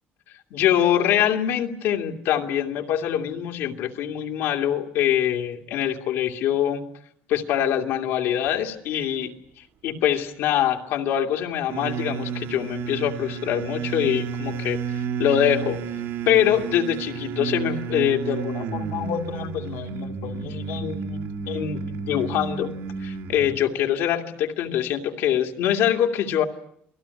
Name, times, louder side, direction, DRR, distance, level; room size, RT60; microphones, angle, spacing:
voice 1, 0.5-6.8 7.3-9.3 9.8-15.8 16.3-22.7 23.0-26.4, left 10 dB, 90° left, 3 dB, 2.5 m, -24 dB
sound 1, 11.7-23.6, right 6 dB, 75° right, 3.5 m, -31 dB
28.0 x 19.0 x 9.8 m, 0.71 s
cardioid pair, 175°, 4 cm